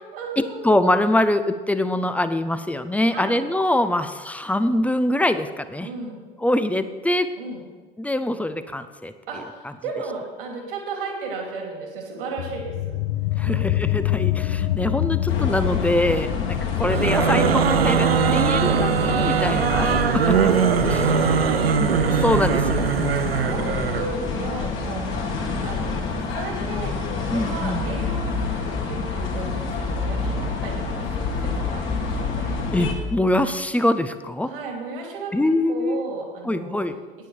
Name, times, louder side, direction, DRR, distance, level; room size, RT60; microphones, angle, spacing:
voice 1, 0.1-0.7 3.1-3.4 5.8-6.2 7.4-7.6 9.3-12.9 13.4-13.7 19.8-20.0 20.3-22.2 22.9-25.4 25.6-32.6 34.4-35.3 35.7-36.8, right 4 dB, 70° right, 1 dB, 2.8 m, -34 dB
voice 2, 0.6-5.9 6.4-7.3 8.0-9.1 13.4-16.3 16.8-20.5 21.8-23.6 27.3-27.9 32.7-34.5 35.3-36.1 36.4-37.0, left 1 dB, 5° left, 11 dB, 0.7 m, -23 dB
sound 1, 12.4-23.5, left 13 dB, 65° left, 0.6 m, -28 dB
sound 2, 15.3-32.9, left 4 dB, 45° left, 2.4 m, -28 dB
sound 3, 16.8-24.1, right 7 dB, 85° right, 0.6 m, -21 dB
10.0 x 9.3 x 6.5 m, 1.4 s
figure-of-eight pair, 70°, 29 cm